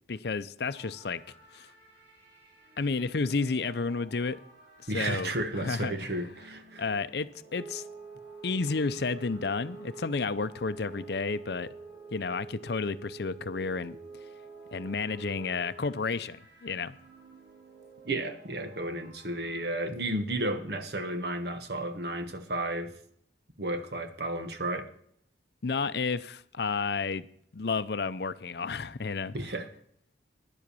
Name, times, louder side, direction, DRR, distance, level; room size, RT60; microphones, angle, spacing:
voice 1, 0.1-1.2 1.5-1.7 2.8-4.4 4.9-5.3 5.6-5.9 6.8-7.8 8.4-11.7 12.1-14.0 14.7-17.0 25.6-27.3 27.5-29.3, left 4 dB, 60° left, 0.5 m, -31 dB
sound 1, 0.6-19.9, right 2 dB, 90° right, 4.2 m, -57 dB
voice 2, 4.9-6.8 18.0-22.9 23.6-24.9 29.3-29.7, right 1 dB, 60° right, 1.3 m, -33 dB
sound 2, 7.5-15.9, right 4 dB, ahead, 1.6 m, -46 dB
10.5 x 7.7 x 6.8 m
head